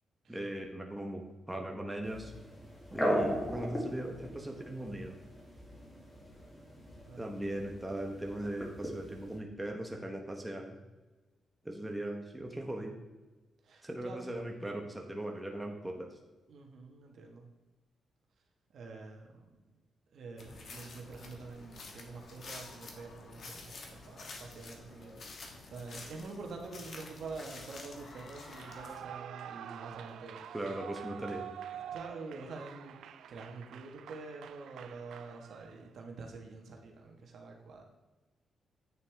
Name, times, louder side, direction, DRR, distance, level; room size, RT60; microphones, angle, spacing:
voice 1, 0.3-1.2 1.5-2.3 2.9-5.2 7.2-10.8 11.6-12.9 13.8-16.1 30.5-31.5, right 1 dB, 10° right, 1 dB, 1.1 m, -39 dB
sound 1, 2.0-9.4, equal, 20° left, 2.2 m, -38 dB
voice 2, 7.1-7.6 13.6-14.3 16.5-17.5 18.7-19.5 20.1-30.6 31.7-33.0 33.3-37.8, right 3 dB, 65° right, 1 dB, 1.6 m, -47 dB
sound 2, 20.4-29.0, left 3 dB, 55° left, 1.5 m, -49 dB
Clapping / Cheering / Applause, 28.5-35.9, right 9 dB, 85° right, 0.4 m, -47 dB
9.1 x 6.9 x 3.5 m, 1.2 s
cardioid pair, 120°, 0 cm